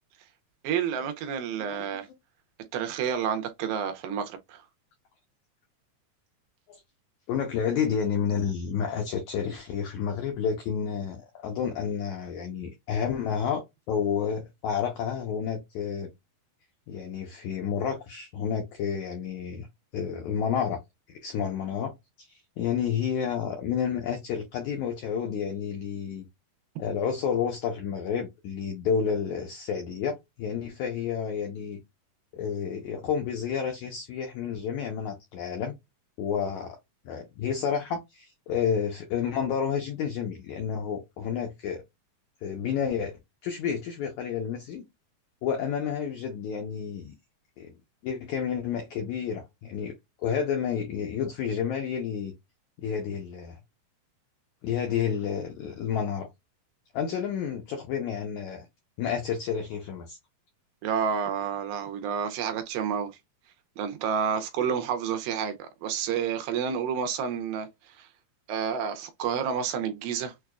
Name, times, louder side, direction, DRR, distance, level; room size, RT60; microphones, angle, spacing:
voice 1, 0.6-2.1 2.7-4.6 60.8-63.1 63.8-67.7 68.0-68.1 68.5-70.3, right 7 dB, 80° right, 2.3 m, -29 dB
voice 2, 7.3-16.1 16.9-19.7 19.9-20.8 21.1-26.2 26.8-31.8 32.3-35.7 36.2-36.8 37.0-41.8 42.4-44.8 45.4-47.1 47.6-47.7 48.0-49.9 50.2-52.3 52.8-53.6 54.6-56.3 56.9-58.7 59.0-60.2, left 7 dB, 80° left, 1.7 m, -30 dB
6.5 x 2.2 x 2.3 m
omnidirectional pair, 4.4 m